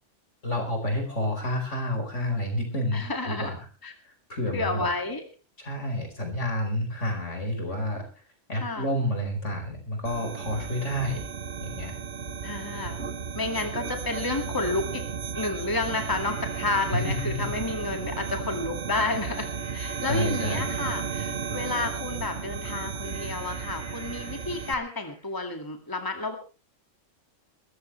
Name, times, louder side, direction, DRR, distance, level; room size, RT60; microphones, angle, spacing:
voice 1, 0.4-3.5 4.0-4.9 5.6-8.0 8.5-11.2 11.6-11.9 16.9-17.3 20.1-20.7, left 1 dB, 70° left, 4 dB, 5.0 m, -29 dB
voice 2, 2.9-3.6 3.8-3.9 4.5-5.2 8.5-8.9 12.4-15.0 15.3-26.4, left 2 dB, 15° left, 5 dB, 2.1 m, -31 dB
sound 1, 10.0-24.7, right 6 dB, 60° right, 1.4 m, -34 dB
sound 2, 14.8-15.0 16.1-18.4 19.5-22.0 23.0-25.3, right 1 dB, 5° right, 7.8 m, -49 dB
22.0 x 14.0 x 3.2 m, 0.34 s
omnidirectional pair, 1.3 m